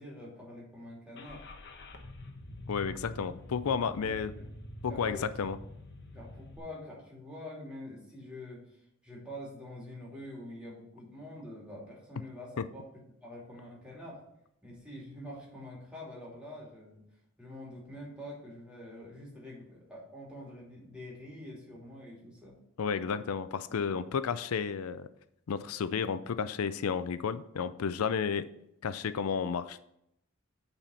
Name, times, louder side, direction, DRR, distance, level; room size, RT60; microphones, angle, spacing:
voice 1, 0.0-1.4 3.9-4.5 4.9-5.3 6.1-12.8 13.2-14.2 14.6-17.0 17.4-22.5, left 1 dB, 5° right, -4 dB, 2.9 m, -46 dB
Car / Engine starting, 1.1-6.6, left 1 dB, 50° left, 1.1 m, -46 dB
voice 2, 2.7-4.3 4.8-5.6 22.8-25.1 25.5-28.5 28.8-29.8, left 6 dB, 90° left, 14 dB, 0.4 m, -32 dB
8.9 x 4.2 x 5.6 m, 0.77 s
head